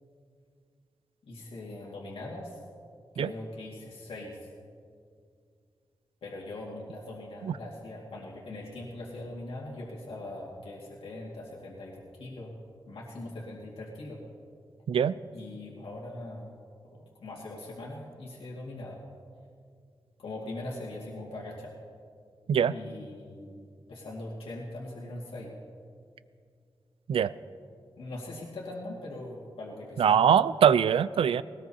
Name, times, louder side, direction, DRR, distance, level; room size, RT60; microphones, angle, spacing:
voice 1, 1.2-2.6 3.1-4.4 6.2-12.5 12.9-14.2 15.1-16.5 16.9-19.0 20.2-21.7 22.7-25.5 28.0-30.4, left 2 dB, 85° left, -4 dB, 2.1 m, -41 dB
voice 2, 30.0-31.4, right 8 dB, 80° right, 16 dB, 0.4 m, -22 dB
20.0 x 18.5 x 2.8 m, 2.3 s
wide cardioid pair, 105°, 9 cm